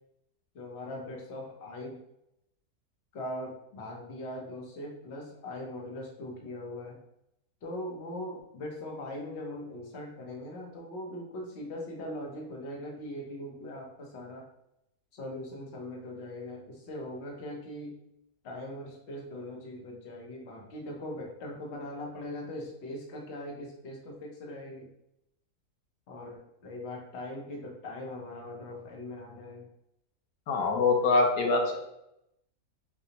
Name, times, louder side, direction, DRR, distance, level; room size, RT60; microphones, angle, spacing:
voice 1, 0.5-2.0 3.1-7.0 7.6-14.4 15.1-17.9 18.4-24.9 26.1-29.7, left 1 dB, 50° left, -1 dB, 1.1 m, -40 dB
voice 2, 30.5-31.8, left 3 dB, 90° left, 2 dB, 1.3 m, -24 dB
6.5 x 2.3 x 2.9 m, 0.81 s
omnidirectional pair, 1.7 m